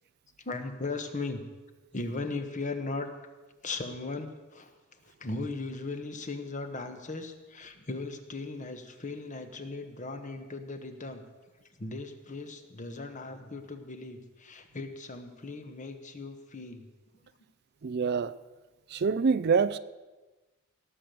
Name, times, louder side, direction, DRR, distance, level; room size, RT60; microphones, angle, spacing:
voice 1, 0.4-1.4 1.9-3.1 3.6-4.7 5.0-11.2 11.8-16.9, left 3 dB, 35° left, 1.3 m, -37 dB
voice 2, 17.8-18.3 18.9-19.8, right 5 dB, 50° right, 0.4 m, -25 dB
17.5 x 6.7 x 7.7 m
head